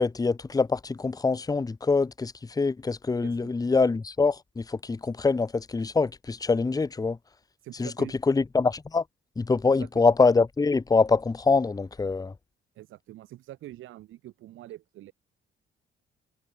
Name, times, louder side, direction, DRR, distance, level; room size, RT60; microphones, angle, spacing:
voice 1, 0.0-7.2 7.8-7.9 8.3-9.0 9.4-12.3, left 4 dB, 20° left, 0.8 m, -24 dB
voice 2, 3.2-3.7 7.6-8.1 9.6-10.1 12.7-15.1, right 14 dB, 85° right, 2.8 m, -45 dB
cardioid pair, 90°, 20 cm